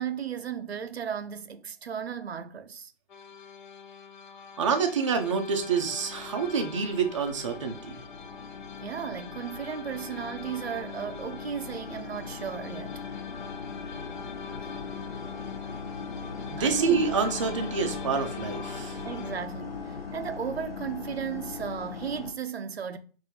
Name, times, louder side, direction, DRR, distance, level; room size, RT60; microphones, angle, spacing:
voice 1, 0.0-2.9 8.8-13.0 16.6-17.1 19.0-23.0, right 7 dB, 90° right, 0.6 m, -35 dB
sound 1, 3.1-19.4, left 5 dB, 50° left, 0.6 m, -44 dB
voice 2, 4.6-8.0 16.5-19.0, right 5 dB, 30° right, 0.5 m, -27 dB
sound 2, 4.8-22.3, left 5 dB, 75° left, 1.1 m, -40 dB
5.1 x 2.6 x 2.8 m
hypercardioid pair, 155°, 30 cm